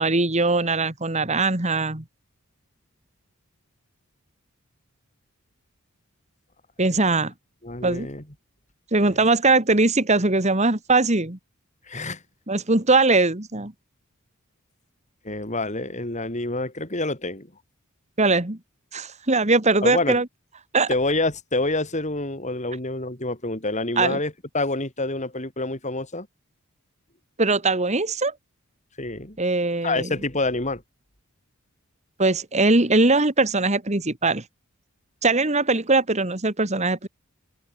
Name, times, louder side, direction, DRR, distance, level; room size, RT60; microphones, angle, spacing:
voice 1, 0.0-2.0 6.8-7.3 7.8-8.1 8.9-11.4 12.5-13.7 18.2-18.6 18.9-20.3 20.7-20.9 24.0-24.2 27.4-28.3 29.4-30.1 32.2-34.4 35.2-37.1, right 3 dB, 30° right, 2.0 m, -21 dB
voice 2, 7.6-8.2 11.9-12.2 15.2-17.5 19.8-20.2 20.9-26.3 29.0-29.4 29.8-30.8, left 2 dB, 35° left, 4.5 m, -27 dB
head